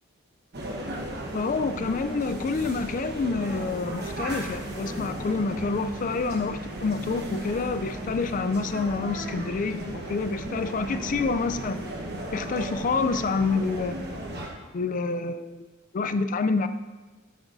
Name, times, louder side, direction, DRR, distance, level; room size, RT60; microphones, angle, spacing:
sound 1, 0.5-14.5, right 1 dB, 50° right, 1.1 m, -36 dB
voice 1, 1.3-11.8 12.3-14.0 14.7-15.7 15.9-16.7, left 4 dB, 35° left, 11 dB, 0.3 m, -27 dB
10.5 x 6.3 x 2.6 m, 1.2 s
head